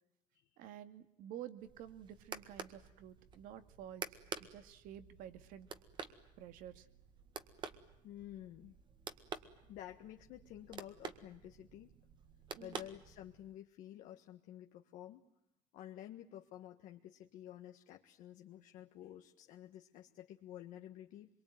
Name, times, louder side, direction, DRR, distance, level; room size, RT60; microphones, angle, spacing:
voice 1, 0.6-5.7 6.4-6.9 12.5-12.9, right 11 dB, 70° right, 10 dB, 2.3 m, -51 dB
sound 1, 1.6-13.5, right 6 dB, 30° right, 1.7 m, -50 dB
voice 2, 8.0-8.8 9.7-11.9 12.6-15.2 15.7-21.3, left 12 dB, 65° left, 3 dB, 1.6 m, -51 dB
26.0 x 23.0 x 9.4 m, 0.83 s
cardioid pair, 155°, 14 cm